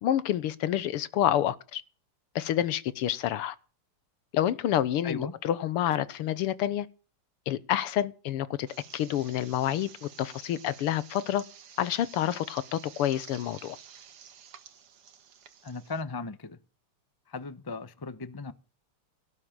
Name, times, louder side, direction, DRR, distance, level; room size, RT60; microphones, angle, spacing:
voice 1, 0.0-1.8 2.4-3.6 4.3-6.9 7.5-8.7 8.9-11.4 11.8-13.8, left 11 dB, 90° left, 1.9 m, -28 dB
sound 1, 8.7-16.0, right 8 dB, 80° right, 2.4 m, -51 dB
voice 2, 15.6-16.6 17.3-18.5, left 4 dB, 35° left, 0.3 m, -37 dB
18.0 x 6.5 x 8.9 m
omnidirectional pair, 2.4 m